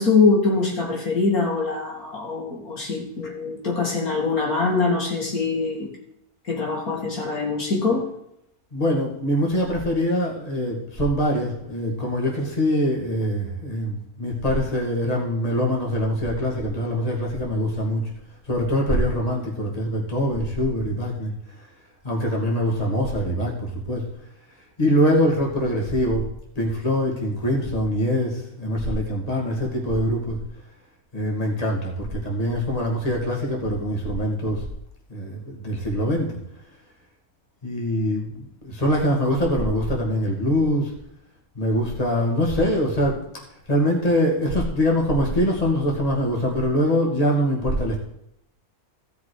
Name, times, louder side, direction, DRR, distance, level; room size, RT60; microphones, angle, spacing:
voice 1, 0.0-5.9 6.4-8.1, left 4 dB, 75° left, -1 dB, 3.0 m, -23 dB
voice 2, 8.7-18.0 18.5-21.3 21.6-21.7 22.0-24.0 24.8-26.3 26.6-30.4 31.1-34.7 35.1-36.3 37.6-40.9 41.5-43.2 43.7-48.0, equal, 25° left, -2 dB, 2.6 m, -23 dB
16.0 x 5.9 x 4.8 m, 0.80 s
omnidirectional pair, 1.6 m